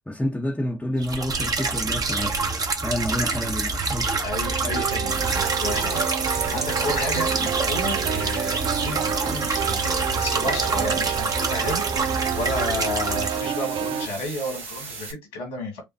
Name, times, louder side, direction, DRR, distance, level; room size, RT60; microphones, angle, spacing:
voice 1, 0.1-2.4 2.8-4.2, left 1 dB, 10° left, 1.0 m, -28 dB
sound 1, 1.0-13.4, right 3 dB, 35° right, 1.3 m, -26 dB
voice 2, 4.2-5.3 5.6-11.8 12.3-15.8, left 2 dB, 80° left, 2.5 m, -32 dB
sound 2, 4.5-14.1, right 9 dB, 55° right, 0.4 m, -29 dB
sound 3, 5.1-15.1, right 4 dB, 70° right, 2.2 m, -37 dB
6.9 x 2.5 x 2.6 m
hypercardioid pair, 55°, 10 cm